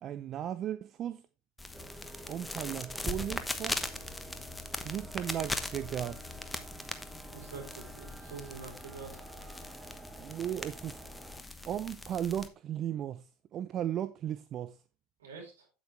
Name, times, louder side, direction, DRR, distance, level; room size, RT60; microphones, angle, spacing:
voice 1, 0.0-1.2 2.3-3.9 4.8-6.2 10.2-11.0 11.7-13.2 13.5-14.8, right 10 dB, 40° right, 0.6 m, -36 dB
sound 1, 1.6-12.5, left 2 dB, 10° left, 1.1 m, -40 dB
sound 2, 1.7-11.4, right 3 dB, 20° right, 1.3 m, -51 dB
voice 2, 7.3-9.2 15.2-15.7, right 5 dB, 80° right, 4.4 m, -46 dB
8.8 x 8.3 x 3.3 m
hypercardioid pair, 80°, 0 cm